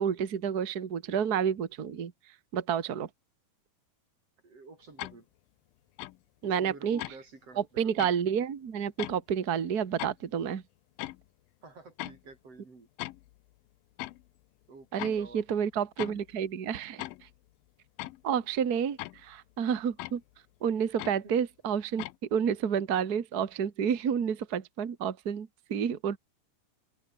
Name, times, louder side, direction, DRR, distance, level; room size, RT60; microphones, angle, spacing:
voice 1, 0.0-2.1 2.5-3.1 6.4-7.0 7.6-10.6 14.9-17.1 18.2-20.2 20.6-22.0 22.3-26.2, right 8 dB, 65° right, 0.9 m, -30 dB
voice 2, 4.4-5.3 6.4-7.9 11.6-12.9 14.7-15.6 21.2-21.3, right 3 dB, 40° right, 6.9 m, -50 dB
sound 1, 5.0-5.2 6.0-6.2 7.0-7.2 8.0-8.1 9.0-9.2 10.0-10.1 11.0-11.2 12.0-12.2 13.0-13.4 14.0-14.2 15.0-15.4 16.0-16.3 17.0-17.3 18.0-18.2 19.0-19.4 20.0-20.2 21.0-21.2 22.0-22.2, left 18 dB, 75° left, 2.4 m, -39 dB
open air
omnidirectional pair, 4.3 m